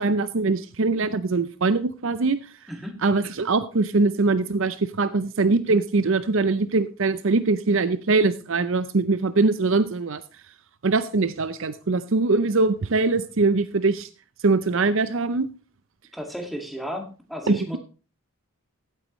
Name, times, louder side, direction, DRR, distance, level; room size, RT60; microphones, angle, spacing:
voice 1, 0.0-2.4 3.0-10.2 10.8-14.1 14.4-15.5 17.5-17.8, right 3 dB, 60° right, 13 dB, 0.6 m, -22 dB
voice 2, 2.7-3.0 16.1-17.8, equal, ahead, 2 dB, 2.1 m, -34 dB
15.0 x 9.2 x 3.1 m, 0.34 s
head